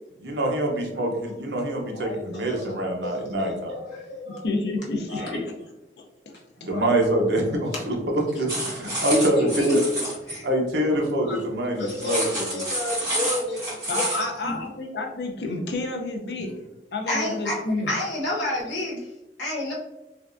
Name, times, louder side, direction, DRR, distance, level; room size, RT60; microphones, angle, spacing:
voice 1, 0.2-3.8 6.6-9.8 10.4-12.6, right 1 dB, 75° right, 1 dB, 0.7 m, -25 dB
voice 2, 1.9-4.4 5.1-5.4 6.7-6.9 7.7-7.8 9.1-10.4 11.2-11.4 11.7-14.6 16.4-16.5 17.1-17.5 17.9-19.0 19.4-19.7, left 1 dB, 85° left, -4 dB, 1.0 m, -30 dB
voice 3, 4.3-5.5 6.0-6.1 9.0-9.1 13.9-16.5 16.9-17.9, left 2 dB, 65° left, 3 dB, 0.5 m, -30 dB
sound 1, 8.5-10.4 11.9-14.2, right 1 dB, 20° right, 1.3 m, -29 dB
3.4 x 2.3 x 2.5 m, 0.97 s
head